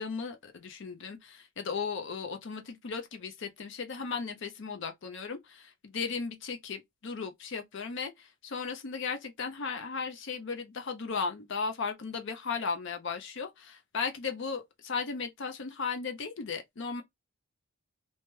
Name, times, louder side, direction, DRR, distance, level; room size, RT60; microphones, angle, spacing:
voice 1, 0.0-17.0, left 5 dB, 55° left, 0.5 m, -36 dB
2.8 x 2.2 x 3.0 m
head